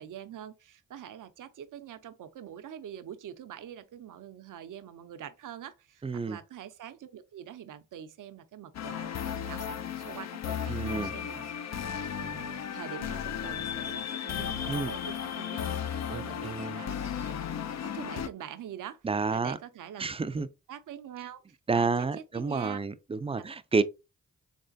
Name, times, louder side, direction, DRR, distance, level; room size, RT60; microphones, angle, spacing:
voice 1, 0.0-11.7 12.2-17.4 17.8-19.0 19.3-20.1 20.7-22.8 23.3-23.5, right 10 dB, 65° right, 0.6 m, -45 dB
voice 2, 6.0-6.4 10.7-11.1 14.7-14.9 16.1-16.8 19.0-19.6 20.0-20.5 21.7-23.8, right 4 dB, 15° right, 0.4 m, -30 dB
sound 1, 8.7-18.3, left 8 dB, 50° left, 0.5 m, -35 dB
3.6 x 3.3 x 2.6 m
supercardioid pair, 40°, 34 cm